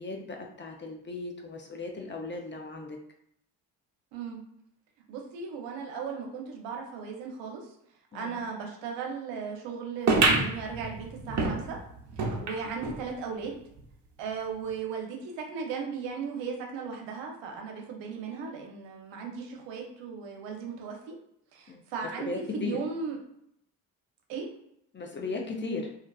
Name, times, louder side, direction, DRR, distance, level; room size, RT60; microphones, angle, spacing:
voice 1, 0.0-3.0 8.1-8.4 21.7-21.8 22.3-22.8 24.9-26.0, left 3 dB, 25° left, 2 dB, 0.5 m, -36 dB
voice 2, 4.1-4.4 5.1-7.7 8.1-11.8 12.2-13.6 14.2-21.1 21.5-23.2 24.3-24.5, right 5 dB, 80° right, 1 dB, 0.7 m, -37 dB
sound 1, 10.1-13.0 13.5-13.6 13.8-13.9 14.6-14.7, right 3 dB, 40° right, 0.8 m, -27 dB
2.4 x 2.3 x 2.3 m, 0.74 s
supercardioid pair, 65°, 44 cm